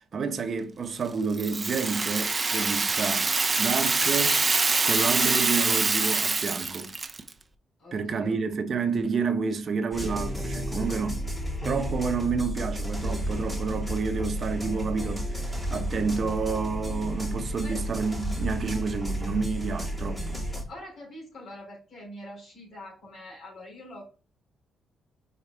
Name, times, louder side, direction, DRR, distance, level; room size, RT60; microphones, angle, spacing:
voice 1, 0.0-3.3 3.6-6.9 7.9-11.2 11.6-20.4, right 5 dB, 50° right, 1.0 m, -30 dB
Rattle (instrument), 1.3-7.3, right 3 dB, 25° right, 0.7 m, -25 dB
voice 2, 7.8-8.4 11.6-11.9 17.6-17.8 20.7-24.1, left 1 dB, 60° left, 3.3 m, -44 dB
sound 1, 9.9-20.6, equal, 10° left, 2.8 m, -32 dB
4.9 x 4.8 x 4.3 m
cardioid pair, 90°, 0 cm